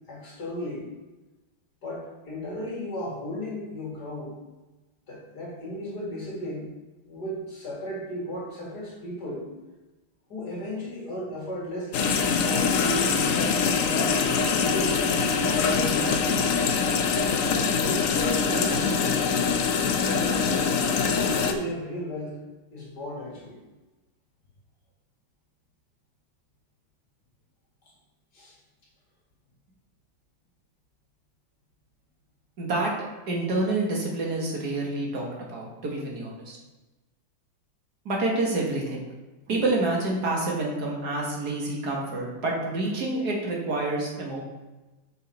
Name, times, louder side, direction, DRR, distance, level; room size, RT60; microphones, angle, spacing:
voice 1, 0.1-0.9 1.8-4.4 5.1-6.7 7.1-9.5 10.3-12.2 12.5-15.0 15.4-16.3 17.7-19.3 20.0-20.6 21.1-22.4 22.7-23.6 28.3-28.6, left 1 dB, 55° left, -4 dB, 2.6 m, -35 dB
sound 1, 11.9-21.5, left 5 dB, 90° left, 0.7 m, -24 dB
voice 2, 32.6-32.9 33.3-36.6 38.1-39.0 39.5-44.4, right 2 dB, 55° right, -2 dB, 2.0 m, -28 dB
7.0 x 5.5 x 4.1 m, 1.1 s
omnidirectional pair, 2.2 m